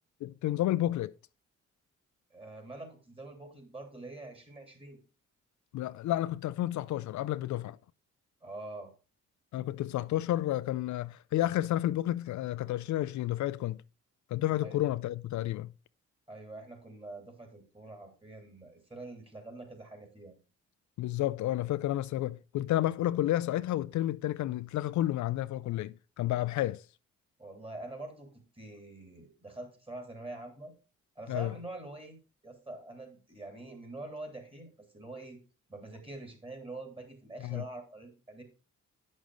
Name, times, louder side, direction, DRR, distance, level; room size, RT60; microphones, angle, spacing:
voice 1, 0.2-1.1 5.7-7.8 9.5-13.8 14.3-15.7 21.0-26.8 31.3-31.5 37.4-37.6, left 14 dB, 75° left, 0.4 m, -31 dB
voice 2, 2.3-5.0 8.4-8.9 14.6-14.8 16.3-20.3 27.4-30.7 31.1-35.4 35.7-38.4, right 2 dB, 20° right, 3.2 m, -45 dB
8.9 x 6.3 x 3.9 m
cardioid pair, 80°, 30 cm